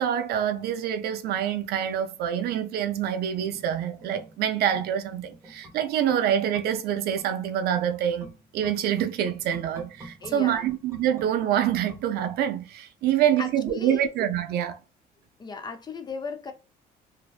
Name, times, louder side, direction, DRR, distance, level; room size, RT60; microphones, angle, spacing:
voice 1, 0.0-14.8, right 10 dB, 70° right, 0.4 m, -26 dB
sound 1, 3.4-12.9 13.2-13.3, right 1 dB, 20° right, 0.7 m, -49 dB
voice 2, 10.2-10.8 13.4-14.1 15.4-16.5, left 4 dB, 25° left, 0.4 m, -36 dB
2.6 x 2.1 x 2.3 m
cardioid pair, 110°, 17 cm